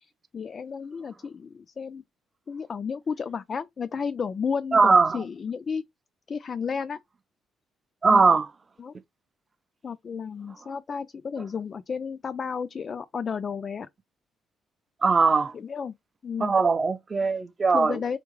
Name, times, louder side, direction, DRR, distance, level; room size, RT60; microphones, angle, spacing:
voice 1, 0.0-2.0 2.5-5.8 6.3-7.0 8.1-8.2 8.8-8.9 9.8-13.9 15.5-16.0 16.2-16.5 17.7-18.2, left 6 dB, 40° left, 0.4 m, -32 dB
voice 2, 4.7-5.2 8.0-8.5 15.0-15.5 16.4-18.0, right 4 dB, 30° right, 0.5 m, -20 dB
4.5 x 3.6 x 3.0 m
cardioid pair, 130°, 0 cm